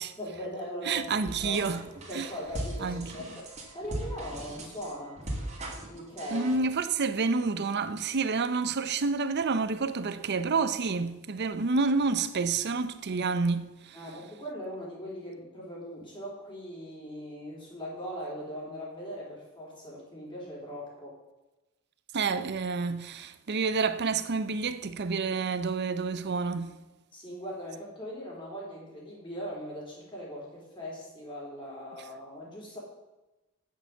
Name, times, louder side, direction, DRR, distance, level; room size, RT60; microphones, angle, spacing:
voice 1, 0.2-1.7 2.1-3.5 3.7-5.2 5.9-6.5 13.9-21.2 27.1-32.8, equal, 25° left, 3.6 m, -40 dB
voice 2, 0.8-1.8 2.1-2.3 2.8-3.1 6.3-14.0 22.1-26.7, right 4 dB, 50° right, 0.6 m, -29 dB
sound 1, 1.2-6.6, right 1 dB, 35° right, 2.2 m, -38 dB
9.0 x 6.6 x 6.6 m
head